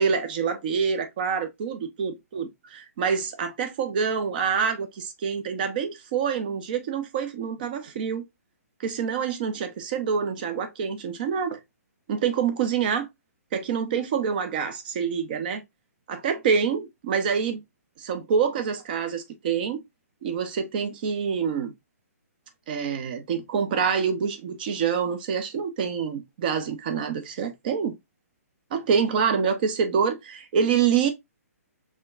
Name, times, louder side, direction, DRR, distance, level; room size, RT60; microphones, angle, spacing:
voice 1, 0.0-8.2 8.8-11.6 12.1-13.1 13.5-15.6 16.1-17.6 18.0-19.8 20.2-21.7 22.7-27.9 28.7-31.1, right 6 dB, 35° right, 0.8 m, -26 dB
5.1 x 3.5 x 2.4 m
hypercardioid pair, 165°, 9 cm